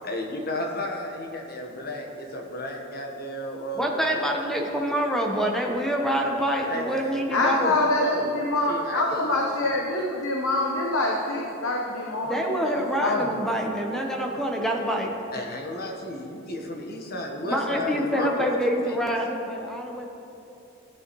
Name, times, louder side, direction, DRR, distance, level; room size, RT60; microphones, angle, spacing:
voice 1, 0.0-4.6 6.7-9.8 15.3-19.0, left 1 dB, 50° left, 2 dB, 1.3 m, -34 dB
voice 2, 3.8-7.7 12.3-15.1 17.4-20.1, equal, ahead, 0 dB, 1.0 m, -26 dB
voice 3, 7.3-12.7 13.0-13.3, left 2 dB, 85° left, -1 dB, 1.0 m, -25 dB
16.0 x 8.5 x 3.1 m, 2.8 s
head